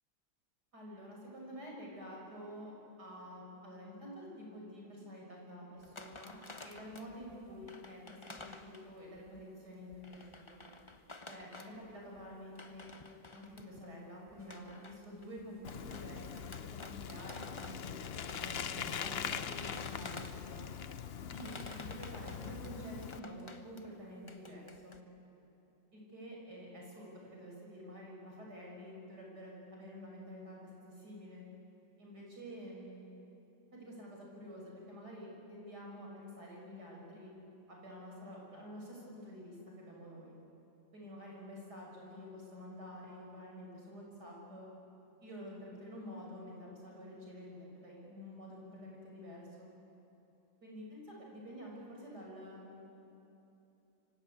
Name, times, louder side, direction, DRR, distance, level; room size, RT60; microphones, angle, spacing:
voice 1, 0.7-2.7 3.0-6.4 6.6-10.6 11.3-12.9 13.3-17.9 18.3-20.7 21.2-25.0 25.9-31.4 32.0-33.0 33.7-37.3 37.7-40.4 40.9-44.7 45.2-49.7 50.6-52.8, equal, 60° right, -2 dB, 7.3 m, -49 dB
sound 1, 5.8-9.4 9.9-13.9 14.3-20.7 21.2-23.9 24.2-25.0, left 3 dB, 20° left, 0.8 m, -52 dB
Bicycle, 15.6-23.2, left 8 dB, 70° left, 0.5 m, -42 dB
27.0 x 24.5 x 8.7 m, 2.9 s
omnidirectional pair, 2.0 m